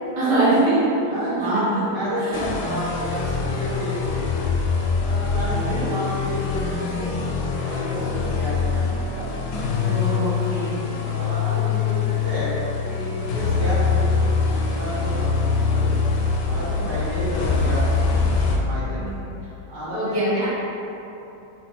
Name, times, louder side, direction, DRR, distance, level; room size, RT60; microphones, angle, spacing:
voice 1, 0.1-1.8 2.2-2.4 5.3-5.9 9.8-10.8 16.8-17.2 19.0-19.1 19.9-20.5, right 2 dB, 80° right, -13 dB, 2.4 m, -24 dB
voice 2, 1.1-4.5 5.0-9.3 10.4-12.5 12.8-15.9 16.5-18.1 18.6-19.2 19.7-20.2, equal, 55° right, -8 dB, 1.5 m, -31 dB
sound 1, 2.3-18.6, left 5 dB, 75° left, 0.9 m, -24 dB
5.0 x 2.2 x 4.5 m, 2.9 s
omnidirectional pair, 2.2 m